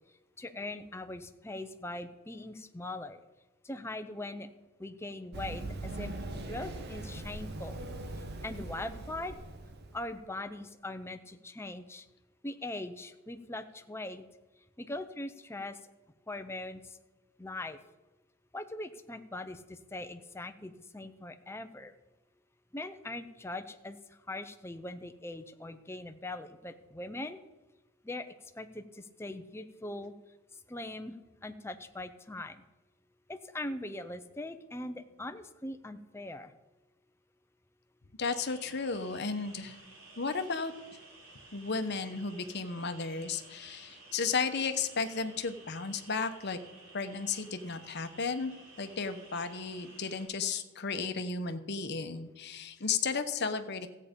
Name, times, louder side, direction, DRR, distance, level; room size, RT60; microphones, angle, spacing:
voice 1, 0.4-3.2 3.6-4.5 4.8-7.8 8.4-9.3 9.9-12.0 12.4-14.2 14.8-15.8 16.3-16.8 17.4-17.8 18.5-21.9 22.7-24.0 24.3-27.4 28.0-30.1 30.7-31.1 31.4-32.6 33.3-36.5, left 2 dB, 10° left, 8 dB, 0.6 m, -41 dB
Run, 5.3-10.1, right 2 dB, 45° right, 1.0 m, -41 dB
voice 2, 38.2-39.8 40.2-40.7 41.5-46.6 46.9-48.5 48.8-53.9, left 5 dB, 50° left, 9 dB, 0.9 m, -34 dB
sound 1, 38.3-50.3, right 2 dB, 70° right, 3.7 m, -54 dB
14.0 x 8.5 x 5.2 m, 1.1 s
head